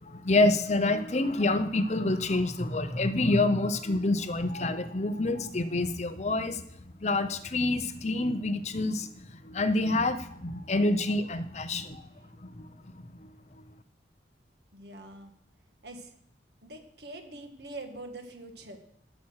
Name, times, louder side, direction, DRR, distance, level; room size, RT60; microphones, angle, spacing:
voice 1, 0.0-6.6 7.0-9.1 9.4-12.0 12.4-12.7 13.2-13.3, left 2 dB, 40° left, 11 dB, 0.7 m, -27 dB
voice 2, 14.7-15.3 15.8-16.1 16.6-18.8, right 2 dB, 65° right, 6 dB, 1.7 m, -44 dB
13.5 x 7.1 x 6.4 m, 0.69 s
head